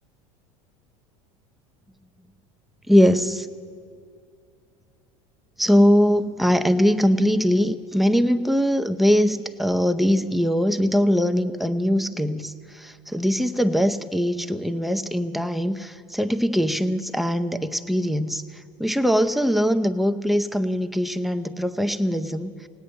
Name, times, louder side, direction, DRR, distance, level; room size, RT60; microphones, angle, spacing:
voice 1, 2.9-3.5 5.6-12.5 12.8-18.4 18.8-22.5, equal, ahead, 8 dB, 0.6 m, -21 dB
17.0 x 9.5 x 8.7 m, 2.4 s
hypercardioid pair, 90°, 17 cm